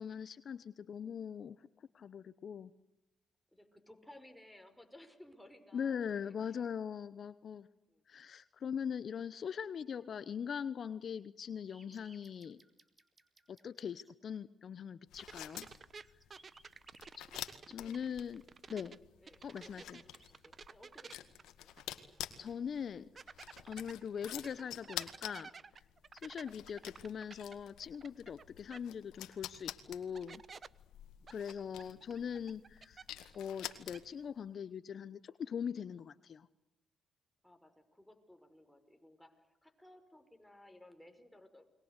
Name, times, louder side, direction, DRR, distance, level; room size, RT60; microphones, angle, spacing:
voice 1, 0.0-2.7 5.7-7.7 8.1-12.6 13.5-15.7 17.7-18.4 18.7-19.0 19.4-20.0 22.4-23.1 23.6-25.5 26.2-30.4 31.3-33.0 33.3-36.5, left 7 dB, 60° left, 15 dB, 0.9 m, -41 dB
voice 2, 3.5-6.7 7.9-8.0 16.7-16.8 17.2-18.0 19.2-21.3 21.6-21.8 37.4-41.7, left 1 dB, 5° left, 6 dB, 5.5 m, -59 dB
sound 1, 11.7-14.1 15.5-15.6 15.8-17.6 18.9-19.0 19.4-20.5, right 2 dB, 30° right, 4.3 m, -64 dB
sound 2, 15.1-34.3, left 13 dB, 85° left, 1.9 m, -49 dB
sound 3, 15.2-19.0 19.3-22.2 22.5-22.6 23.2-28.4 28.7-28.8 29.7-29.8 30.1-30.7 31.3-33.4 33.6-34.0, right 5 dB, 45° right, 1.1 m, -53 dB
30.0 x 22.5 x 8.2 m, 0.93 s
supercardioid pair, 65°, 0 cm